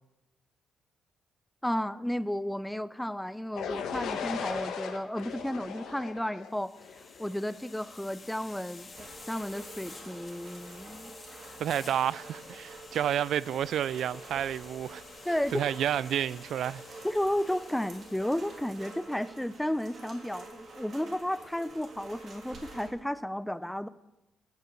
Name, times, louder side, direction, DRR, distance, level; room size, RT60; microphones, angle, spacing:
voice 1, 1.6-6.7 7.2-11.1 11.5-11.6 15.3-15.6 17.0-23.9, left 1 dB, 5° left, 0.5 m, -33 dB
sound 1, 3.6-7.4, left 6 dB, 80° left, 1.6 m, -37 dB
sound 2, 6.4-19.2, left 4 dB, 35° left, 1.8 m, -50 dB
Rain, 8.9-22.9, right 3 dB, 50° right, 3.0 m, -48 dB
voice 2, 11.6-15.0 15.5-16.8, right 10 dB, 70° right, 0.4 m, -30 dB
13.0 x 6.9 x 7.9 m
cardioid pair, 90°, 0 cm